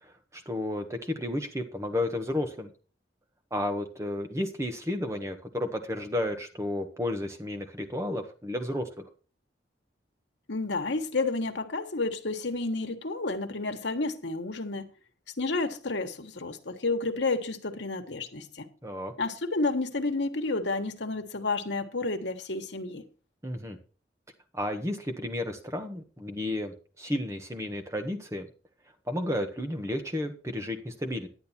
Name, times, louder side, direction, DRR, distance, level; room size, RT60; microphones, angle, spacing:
voice 1, 0.0-2.7 3.5-9.0 18.8-19.1 23.4-23.8 24.5-28.5 29.1-31.3, left 1 dB, 15° right, 1.5 m, -32 dB
voice 2, 10.5-14.9 15.4-18.7 19.2-23.0, left 3 dB, 85° left, 1.4 m, -30 dB
11.0 x 9.2 x 4.3 m
head